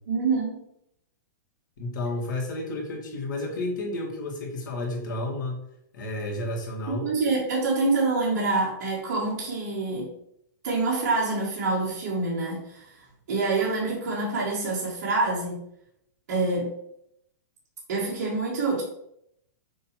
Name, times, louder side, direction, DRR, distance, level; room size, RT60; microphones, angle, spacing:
voice 1, 0.1-0.6 6.9-10.1 10.6-15.6 16.3-16.7 17.9-18.8, right 3 dB, 50° right, -6 dB, 2.0 m, -26 dB
voice 2, 1.8-5.6 5.9-7.1, left 2 dB, 75° left, -1 dB, 2.1 m, -31 dB
6.6 x 3.2 x 4.5 m, 0.74 s
supercardioid pair, 175°, 10 cm